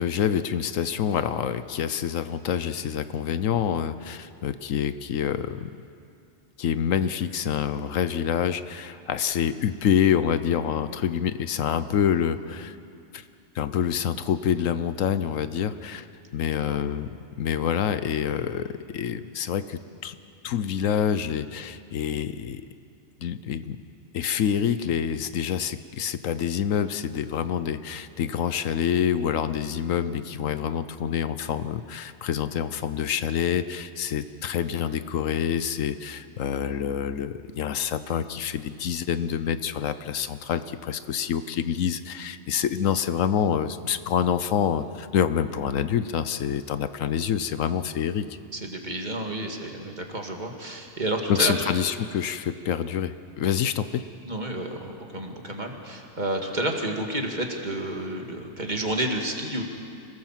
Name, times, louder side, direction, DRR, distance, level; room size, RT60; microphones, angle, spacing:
voice 1, 0.0-5.7 6.6-12.8 13.1-13.2 13.5-16.1 16.3-17.1 17.4-20.2 20.4-22.6 23.2-23.8 24.1-48.2 51.3-54.0, left 8 dB, 75° left, 12 dB, 1.1 m, -27 dB
voice 2, 48.5-51.5 54.3-59.6, right 1 dB, 35° right, 2 dB, 2.2 m, -30 dB
26.5 x 18.0 x 7.4 m, 2.4 s
omnidirectional pair, 1.4 m